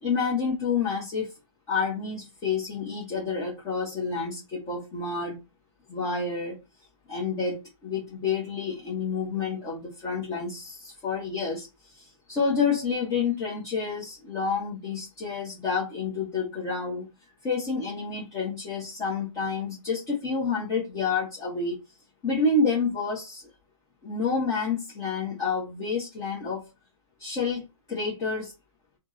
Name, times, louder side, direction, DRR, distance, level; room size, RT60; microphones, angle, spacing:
voice 1, 0.0-1.3 1.7-5.4 5.9-6.5 7.1-17.1 17.4-21.7 22.2-23.5 24.0-26.7 27.2-28.5, left 4 dB, 20° left, 1.5 m, -29 dB
3.5 x 2.5 x 4.2 m
hypercardioid pair, 145°, 17 cm